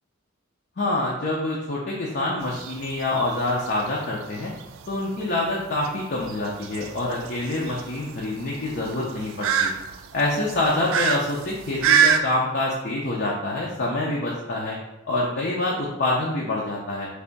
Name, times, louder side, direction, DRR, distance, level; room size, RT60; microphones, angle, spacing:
voice 1, 0.8-4.5 4.9-9.7 10.1-14.8 15.1-17.1, left 2 dB, 50° left, -4 dB, 0.6 m, -26 dB
sound 1, 2.4-12.2, right 7 dB, 70° right, 0.3 m, -26 dB
3.4 x 2.6 x 4.0 m, 0.96 s
head